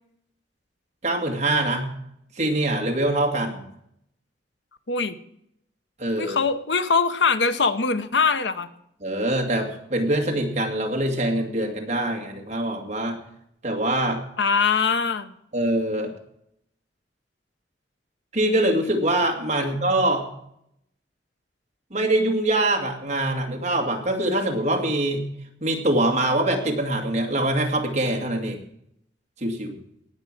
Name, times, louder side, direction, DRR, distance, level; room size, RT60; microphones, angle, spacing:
voice 1, 1.0-1.9 2.4-3.7 6.0-6.4 9.0-13.2 13.6-14.2 15.5-16.1 18.3-20.3 21.9-25.3 25.6-28.6 29.4-29.8, right 1 dB, 40° right, 3 dB, 2.2 m, -24 dB
voice 2, 6.2-8.7 14.4-15.3, left 5 dB, 80° left, 11 dB, 0.9 m, -22 dB
18.0 x 6.1 x 7.6 m, 0.76 s
head